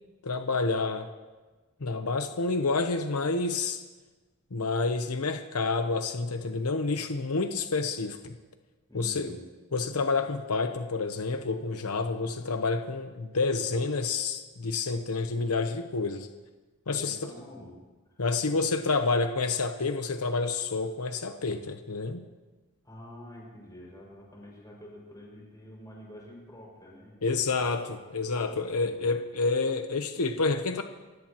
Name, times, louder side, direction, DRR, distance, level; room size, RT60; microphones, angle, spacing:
voice 1, 0.2-1.1 1.8-3.8 4.5-8.3 8.9-9.4 9.7-16.3 16.9-17.1 18.2-22.3 27.2-30.8, left 3 dB, 80° left, 6 dB, 0.9 m, -29 dB
voice 2, 8.9-9.4 17.0-17.8 18.1-18.6 22.8-27.6 28.3-29.1, left 1 dB, 15° left, -3 dB, 6.0 m, -48 dB
28.5 x 16.0 x 3.0 m, 1.3 s
head